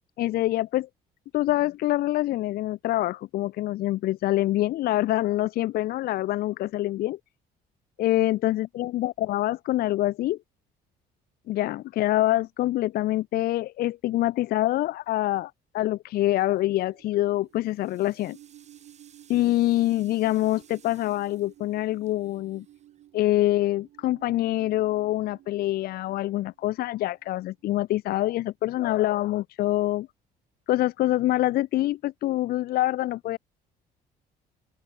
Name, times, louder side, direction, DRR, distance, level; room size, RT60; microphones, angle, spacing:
voice 1, 0.2-0.9 1.3-7.2 8.0-10.4 11.5-18.4 19.3-22.6 23.1-30.1 30.7-33.4, left 15 dB, 65° left, 0.5 m, -25 dB
sound 1, 16.6-17.0 17.4-23.7, right 7 dB, 40° right, 5.1 m, -59 dB
sound 2, 16.7-27.6, right 13 dB, 70° right, 4.6 m, -54 dB
open air
cardioid pair, 110°, 17 cm